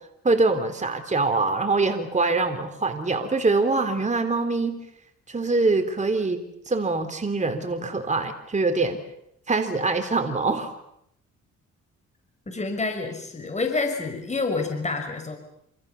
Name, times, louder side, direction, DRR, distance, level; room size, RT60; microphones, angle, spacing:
voice 1, 0.2-4.8 5.3-9.0 9.5-10.7, right 3 dB, 25° right, 5 dB, 3.6 m, -24 dB
voice 2, 12.5-15.4, left 3 dB, 25° left, 5 dB, 5.8 m, -28 dB
28.0 x 27.5 x 7.1 m, 0.76 s
cardioid pair, 90°, 30 cm